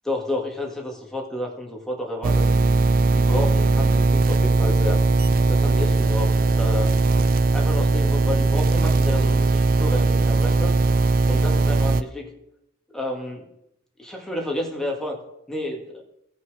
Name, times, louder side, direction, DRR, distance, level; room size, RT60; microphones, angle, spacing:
voice 1, 0.1-2.5 3.1-5.0 5.5-6.3 6.6-6.9 7.5-10.8 11.3-12.3 12.9-13.4 14.0-15.2 15.5-16.0, left 1 dB, 5° left, 0 dB, 1.9 m, -30 dB
sound 1, 2.2-12.0, right 3 dB, 45° right, 0.4 m, -19 dB
sound 2, 5.1-10.1, equal, 55° left, 1.1 m, -42 dB
16.5 x 5.6 x 4.9 m, 0.81 s
head